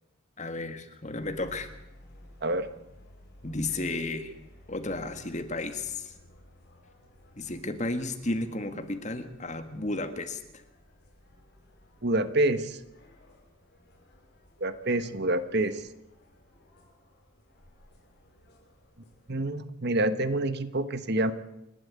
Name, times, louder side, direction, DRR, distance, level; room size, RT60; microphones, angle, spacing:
voice 1, 0.4-1.7 3.4-4.3 4.7-6.1 7.4-10.6, left 2 dB, 35° left, 8 dB, 1.8 m, -33 dB
sound 1, 1.2-19.4, left 1 dB, 50° left, 6.8 m, -56 dB
voice 2, 12.0-12.8 14.6-15.8 19.3-21.3, right 1 dB, 50° right, 11 dB, 1.2 m, -27 dB
29.0 x 12.0 x 8.4 m, 0.88 s
head